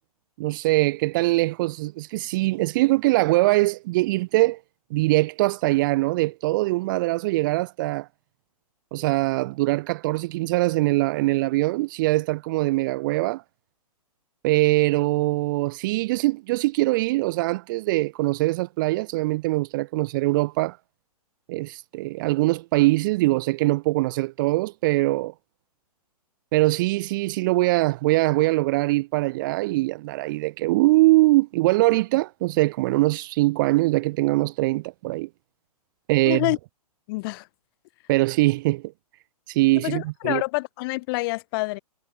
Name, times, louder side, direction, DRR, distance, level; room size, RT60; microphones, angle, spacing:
voice 1, 0.4-4.6 4.9-8.1 8.9-13.4 14.4-20.8 21.5-25.3 26.5-35.3 36.1-36.5 38.1-38.8 39.5-40.4, right 20 dB, 30° right, 0.6 m, -22 dB
voice 2, 36.2-36.6 37.1-37.5 39.7-41.8, left 24 dB, 35° left, 3.5 m, -27 dB
figure-of-eight pair, 130°, 20 cm